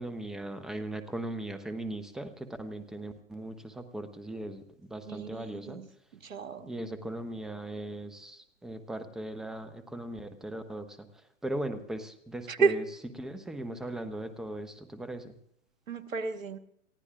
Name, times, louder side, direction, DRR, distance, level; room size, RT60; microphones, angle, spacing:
voice 1, 0.0-5.8 6.6-12.8 13.2-15.3, right 1 dB, ahead, 9 dB, 0.6 m, -38 dB
voice 2, 5.1-5.9 6.2-6.9 12.5-12.8 15.9-16.6, right 5 dB, 85° right, 7 dB, 1.4 m, -31 dB
29.0 x 15.0 x 2.4 m, 0.74 s
hypercardioid pair, 130°, 39 cm